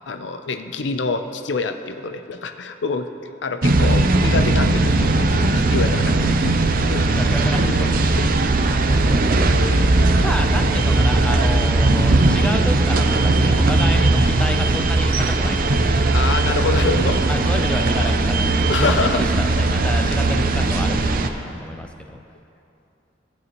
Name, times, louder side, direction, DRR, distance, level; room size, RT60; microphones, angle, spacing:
voice 1, 0.1-7.3 7.7-8.3 10.1-10.2 11.4-11.7 16.1-17.4 18.7-19.2 21.0-21.7, left 3 dB, 75° left, 8 dB, 0.6 m, -27 dB
sound 1, 3.6-21.3, right 2 dB, 50° right, 0.6 m, -18 dB
voice 2, 7.1-7.9 10.2-16.0 17.3-22.2, equal, 5° left, 4 dB, 0.5 m, -29 dB
17.0 x 8.9 x 3.0 m, 2.7 s
head